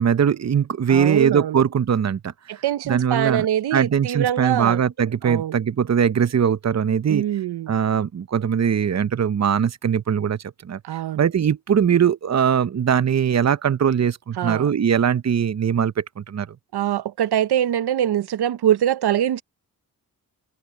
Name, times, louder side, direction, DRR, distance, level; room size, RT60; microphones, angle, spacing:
voice 1, 0.0-2.3 2.9-3.5 3.7-7.2 7.7-10.8 11.1-16.5, right 8 dB, 45° right, 0.8 m, -21 dB
voice 2, 0.9-1.6 2.5-4.8 5.2-5.6 7.1-7.7 10.8-11.3 14.4-14.7 16.7-19.4, right 11 dB, 80° right, 0.8 m, -23 dB
supercardioid pair, 45°, 38 cm